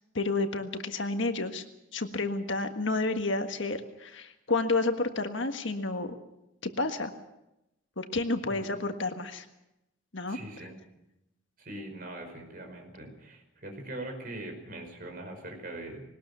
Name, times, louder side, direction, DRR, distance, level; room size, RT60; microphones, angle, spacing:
voice 1, 0.1-1.6 1.9-6.2 6.6-7.1 8.0-9.4 10.1-10.7, left 3 dB, 60° left, 7 dB, 1.6 m, -30 dB
voice 2, 10.3-10.7 11.6-16.0, right 1 dB, 45° right, 4 dB, 5.2 m, -42 dB
21.0 x 19.0 x 7.0 m, 0.90 s
head